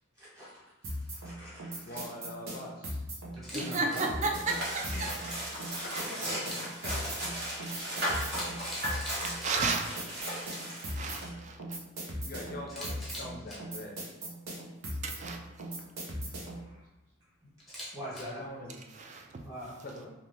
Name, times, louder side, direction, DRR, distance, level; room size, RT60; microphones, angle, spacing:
voice 1, 0.1-2.0 3.3-4.3 4.9-5.3 15.1-15.3 15.7-15.9 16.3-16.8 17.9-18.4 19.4-19.8, equal, 15° right, -9 dB, 1.4 m, -44 dB
sound 1, 0.8-16.7, right 1 dB, 85° right, 0.8 m, -39 dB
voice 2, 1.8-3.0 5.8-6.2 6.8-7.0 12.2-14.0 18.4-18.8 19.8-20.1, left 1 dB, 45° left, 1 dB, 0.5 m, -43 dB
Camera, 3.3-3.6 3.9-4.0 6.3-6.9 7.9-8.0 8.3-9.5 12.7-13.6 17.6-18.2, equal, ahead, 0.7 m, -42 dB
voice 3, 3.5-5.1 9.4-9.9 11.0-11.8 15.0-15.4 19.0-19.3, right 3 dB, 35° right, 3 dB, 0.3 m, -32 dB
sound 2, 4.5-11.3, equal, 55° right, 1.2 m, -36 dB
2.7 x 2.6 x 3.2 m, 1.0 s
head